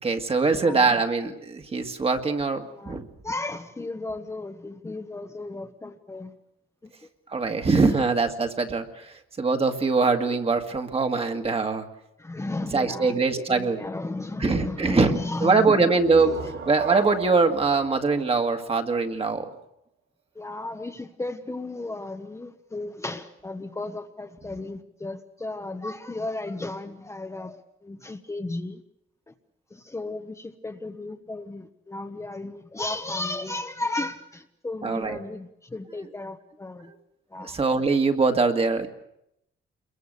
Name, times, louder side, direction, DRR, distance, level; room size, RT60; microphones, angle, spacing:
voice 1, 0.0-3.1 7.3-11.9 12.7-13.8 14.4-16.3 16.7-19.5 34.8-35.2 36.8-36.9 37.4-38.9, right 4 dB, 30° right, 5 dB, 2.0 m, -23 dB
voice 2, 0.5-1.0 2.6-6.3 6.8-6.9 7.5-7.6 7.9-8.1 12.2-15.9 16.2-16.6 20.3-28.8 29.3-29.4 29.7-36.9 37.3-37.5, left 2 dB, 15° left, 5 dB, 1.0 m, -34 dB
sound 1, 15.8-19.4, right 5 dB, 80° right, 6.2 m, -36 dB
28.5 x 23.0 x 6.8 m, 0.81 s
cardioid pair, 150°, 21 cm